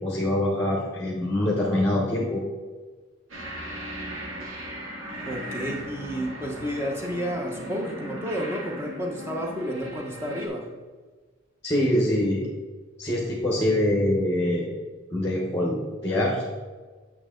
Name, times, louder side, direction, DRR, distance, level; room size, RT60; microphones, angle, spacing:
voice 1, 0.0-2.4 11.6-12.5 13.0-14.7 15.1-16.4, left 1 dB, 15° left, -2 dB, 1.2 m, -24 dB
sound 1, 3.3-10.5, equal, 85° right, 2.1 m, -37 dB
voice 2, 5.2-10.7, equal, 10° right, 1 dB, 1.1 m, -31 dB
9.0 x 6.1 x 3.8 m, 1.4 s
head